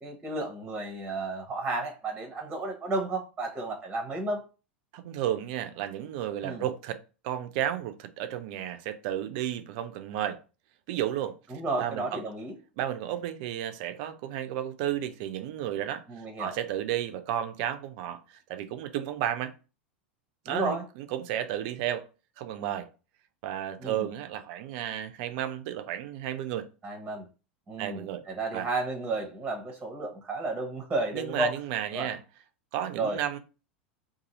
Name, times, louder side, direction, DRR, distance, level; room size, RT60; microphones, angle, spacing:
voice 1, 0.0-4.4 6.4-6.6 11.5-12.6 16.1-16.6 20.5-20.8 23.8-24.1 26.8-27.3 27.7-31.5 31.9-32.1 33.0-33.2, right 2 dB, 15° right, 0.7 m, -32 dB
voice 2, 4.9-7.0 7.2-10.4 10.9-11.3 11.8-12.2 12.8-19.5 20.5-22.1 22.4-22.9 23.4-26.7 27.8-28.2 28.5-28.7 31.1-32.2 32.7-33.4, right 11 dB, 50° right, 0.4 m, -32 dB
2.6 x 2.6 x 4.0 m
figure-of-eight pair, 85°, 6 cm